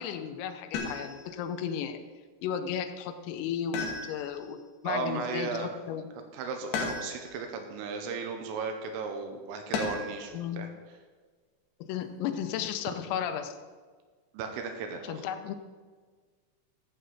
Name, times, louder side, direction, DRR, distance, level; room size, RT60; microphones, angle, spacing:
voice 1, 0.0-2.0 2.4-6.1 10.3-10.6 11.8-13.6 15.1-15.6, left 8 dB, 85° left, 8 dB, 3.5 m, -34 dB
sound 1, 0.7-1.4 3.7-4.5 6.7-7.4 9.7-10.3 11.9-12.6, left 4 dB, 65° left, 2.9 m, -35 dB
voice 2, 4.9-5.7 6.3-10.7 14.3-15.2, right 5 dB, 80° right, 5 dB, 3.5 m, -35 dB
14.5 x 7.7 x 3.9 m, 1.5 s
omnidirectional pair, 5.9 m